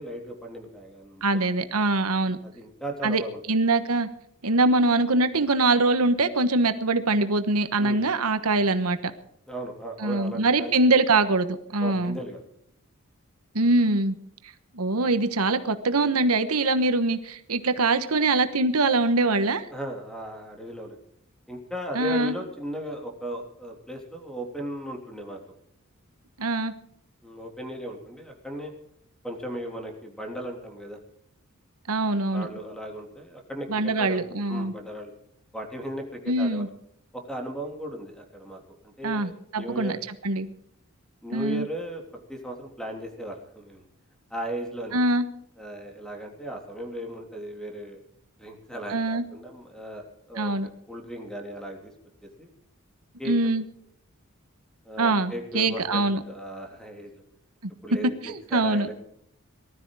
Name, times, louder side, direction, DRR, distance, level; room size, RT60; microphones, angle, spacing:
voice 1, 0.0-1.4 2.4-3.4 7.8-8.0 9.5-10.8 11.8-12.4 19.7-21.0 21.5-25.4 27.2-28.7 29.2-31.0 32.3-34.2 34.5-35.1 35.5-36.7 37.1-40.0 41.2-42.0 42.3-43.8 44.3-45.0 45.6-48.0 48.4-50.5 50.9-51.9 52.2-52.5 53.2-53.3 54.8-57.1 57.8-58.9, right 1 dB, 5° left, 2 dB, 3.3 m, -36 dB
voice 2, 1.2-2.4 3.0-3.2 3.5-4.1 4.4-9.1 10.0-12.2 13.5-14.2 14.7-19.6 21.9-22.3 26.4-26.7 31.9-32.5 33.7-34.7 36.3-36.7 39.0-40.0 40.2-40.5 41.3-41.7 44.9-45.2 48.9-49.2 50.4-50.7 53.2-53.6 55.0-56.2 58.2-58.9, right 2 dB, 90° right, 10 dB, 1.2 m, -23 dB
19.5 x 12.5 x 4.9 m, 0.71 s
head